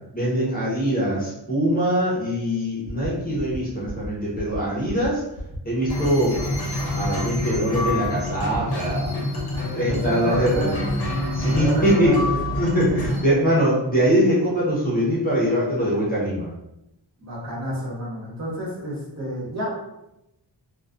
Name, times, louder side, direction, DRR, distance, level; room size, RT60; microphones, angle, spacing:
voice 1, 0.1-5.2 5.7-6.3 6.6-9.1 9.7-10.7 11.3-12.1 12.5-16.5, equal, 20° left, -8 dB, 0.7 m, -22 dB
sound 1, 2.8-3.1 3.3-3.6 3.8-4.1 4.3-4.6 4.8-5.1 5.3-5.6 5.8-6.1 6.3-6.6 6.8-7.1 7.3-7.6 7.8-8.1 8.3-8.6 8.8-9.1 9.3-9.6 9.8-10.1 10.3-10.6 10.8-11.1 11.3-11.6 11.8-12.1 12.3-12.6 12.8-13.1, left 1 dB, 85° right, 0.8 m, -33 dB
sound 2, 5.9-13.2, left 1 dB, 60° left, 0.7 m, -27 dB
voice 2, 9.5-10.8 11.4-12.4 17.2-19.8, equal, 35° right, -8 dB, 1.0 m, -30 dB
2.3 x 2.2 x 2.4 m, 0.89 s
wide cardioid pair, 165°, 43 cm